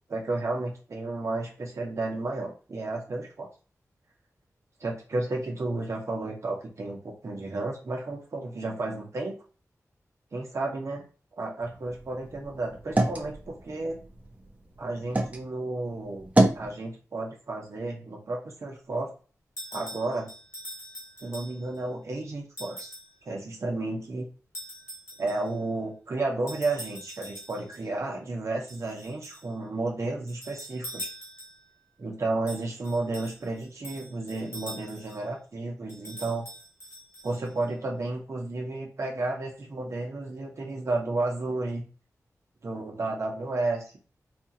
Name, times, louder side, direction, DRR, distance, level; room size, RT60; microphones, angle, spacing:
voice 1, 0.1-3.5 4.8-9.4 10.3-11.0 11.4-14.0 14.8-19.1 19.7-20.3 21.2-22.9 23.3-24.2 25.2-31.1 32.0-36.5 37.2-41.8 42.6-44.0, right 2 dB, 55° right, -1 dB, 0.9 m, -32 dB
sound 1, 11.6-15.4 15.8-16.7, right 1 dB, 25° right, 0.7 m, -28 dB
sound 2, 19.6-21.8 22.6-23.2 24.5-25.6 26.5-27.9 28.7-29.5 30.3-31.7 32.5-35.2 35.9-37.7, equal, 50° left, 1.5 m, -43 dB
4.3 x 2.4 x 2.8 m, 0.36 s
wide cardioid pair, 125°, 6 cm